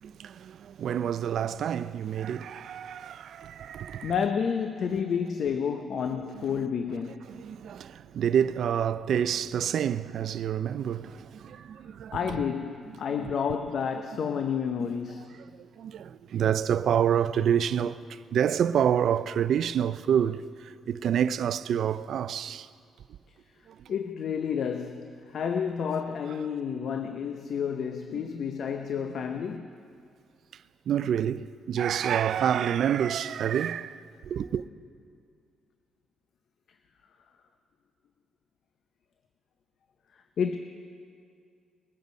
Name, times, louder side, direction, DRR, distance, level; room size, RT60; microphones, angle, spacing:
voice 1, 0.0-4.1 4.9-5.0 6.1-6.7 7.3-12.4 12.9-13.3 15.3-22.7 23.7-24.0 28.1-28.3 30.5-34.7, right 9 dB, 65° right, 0.4 m, -28 dB
voice 2, 4.0-7.4 12.1-15.4 23.9-29.7 40.4-40.6, left 7 dB, 60° left, 0.6 m, -30 dB
20.5 x 8.1 x 5.2 m
cardioid pair, 90°, 0 cm